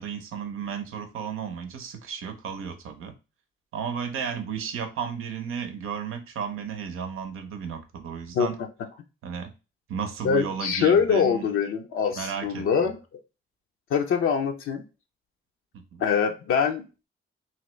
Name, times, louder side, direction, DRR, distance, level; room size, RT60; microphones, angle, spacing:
voice 1, 0.0-3.1 3.7-8.6 9.2-9.5 9.9-11.5 12.1-12.9 15.7-16.0, right 6 dB, 90° right, 7 dB, 0.6 m, -34 dB
voice 2, 10.2-13.0 13.9-14.8 16.0-16.9, left 6 dB, 80° left, 3 dB, 0.5 m, -23 dB
3.0 x 2.7 x 3.1 m, 0.30 s
cardioid pair, 65°, 21 cm